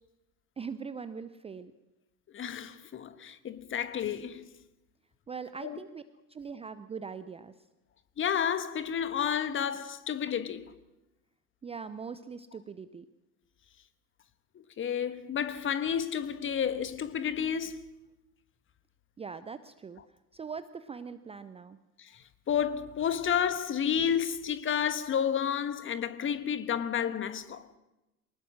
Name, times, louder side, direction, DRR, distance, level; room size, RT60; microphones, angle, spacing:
voice 1, 0.6-1.7 5.3-6.0 6.3-7.5 11.6-13.0 19.2-20.0 20.3-21.8, right 5 dB, 15° right, 0.6 m, -41 dB
voice 2, 2.3-4.5 5.6-5.8 8.2-10.6 14.8-17.8 22.0-27.7, left 8 dB, 25° left, 1.4 m, -31 dB
23.5 x 19.5 x 6.3 m
figure-of-eight pair, 75°, 46 cm